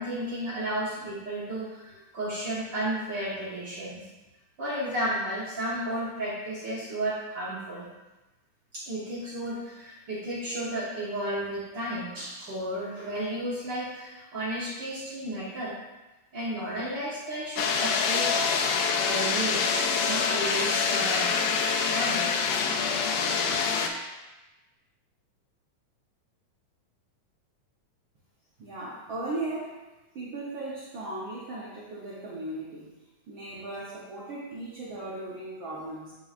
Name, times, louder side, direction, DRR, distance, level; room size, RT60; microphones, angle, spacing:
voice 1, 0.0-4.0 4.6-7.9 8.7-15.7 16.3-18.3 18.7-19.7 20.0-21.4 21.9-22.3, right 1 dB, 60° right, -7 dB, 1.2 m, -33 dB
sound 1, 17.6-23.9, left 5 dB, 80° left, 1.5 m, -26 dB
voice 2, 28.6-29.8 30.1-36.1, right 2 dB, 80° right, -7 dB, 1.1 m, -37 dB
8.6 x 4.6 x 2.4 m, 1.1 s
omnidirectional pair, 3.5 m